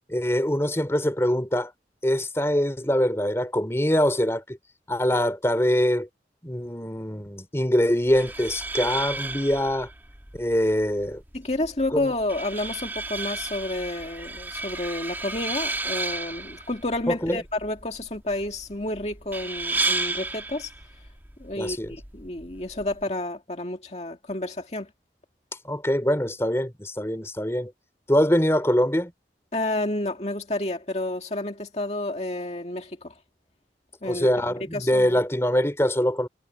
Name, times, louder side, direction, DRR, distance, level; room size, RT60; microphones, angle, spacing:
voice 1, 0.1-1.7 2.0-4.6 4.9-6.1 6.4-9.9 10.3-11.2 11.9-12.0 17.1-17.4 21.6-21.9 25.6-27.7 28.1-29.1 34.0-36.3, equal, 15° left, 2.9 m, -23 dB
sound 1, 8.0-23.0, right 3 dB, 10° right, 1.7 m, -33 dB
voice 2, 11.3-20.7 21.4-24.9 29.5-33.1 34.0-34.3 34.7-35.2, left 2 dB, 40° left, 2.2 m, -30 dB
head